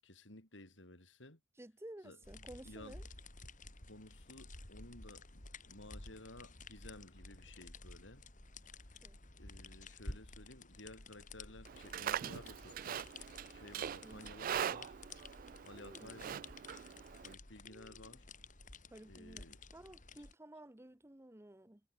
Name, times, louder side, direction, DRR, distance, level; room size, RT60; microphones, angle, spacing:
voice 1, 0.0-1.4 2.0-3.0 3.9-8.2 9.4-13.1 13.5-15.0 15.6-16.5 17.2-18.3 19.0-19.6, left 1 dB, 80° left, 6.9 m, -55 dB
voice 2, 1.6-3.0 9.0-9.2 14.0-14.4 15.7-16.3 17.6-18.2 18.9-21.8, right 1 dB, 15° right, 1.0 m, -54 dB
sound 1, 2.2-20.3, left 3 dB, 45° left, 4.1 m, -53 dB
Livestock farm animals working animals, 11.7-17.3, right 9 dB, 50° right, 0.3 m, -42 dB
head